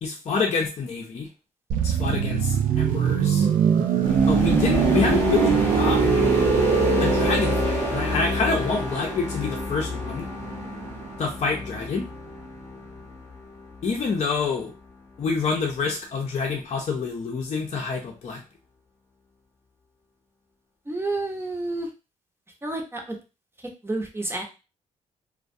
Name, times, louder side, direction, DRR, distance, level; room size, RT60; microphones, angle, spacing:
voice 1, 0.0-1.3 1.8-3.5 4.3-6.3 7.0-10.3 11.2-12.1 13.8-14.7 15.2-18.4, left 4 dB, 50° left, 0 dB, 0.6 m, -27 dB
sound 1, 1.7-11.4 11.6-11.9, right 7 dB, 75° right, 0.4 m, -23 dB
sound 2, 4.0-14.5, left 3 dB, 15° left, 0.8 m, -29 dB
voice 2, 20.9-21.9 22.6-23.2 23.8-24.4, right 2 dB, 15° right, 2 dB, 0.7 m, -29 dB
2.2 x 2.2 x 2.6 m, 0.30 s
supercardioid pair, 60°, 14 cm